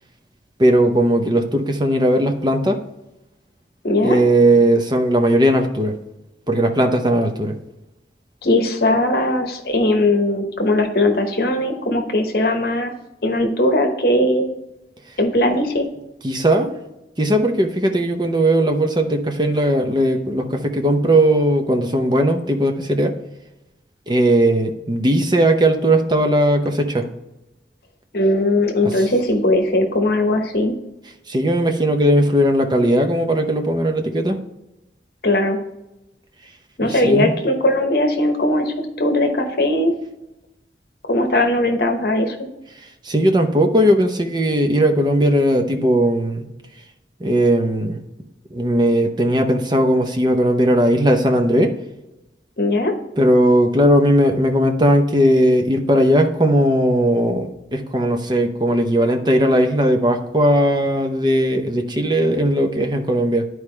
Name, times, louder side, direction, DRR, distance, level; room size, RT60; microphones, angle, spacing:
voice 1, 0.6-2.8 4.0-5.9 6.5-7.5 16.2-16.7 17.2-23.1 24.1-27.1 28.8-28.9 31.3-34.4 36.8-37.3 43.0-46.5 47.2-48.0 48.5-51.7 53.2-63.5, right 1 dB, 25° right, 4 dB, 0.7 m, -17 dB
voice 2, 3.8-4.2 8.4-12.9 13.2-14.5 15.2-15.9 28.1-30.7 35.2-35.6 36.8-39.9 41.1-42.5 52.6-52.9, left 1 dB, 55° left, 4 dB, 1.0 m, -19 dB
10.5 x 4.7 x 3.3 m, 0.92 s
head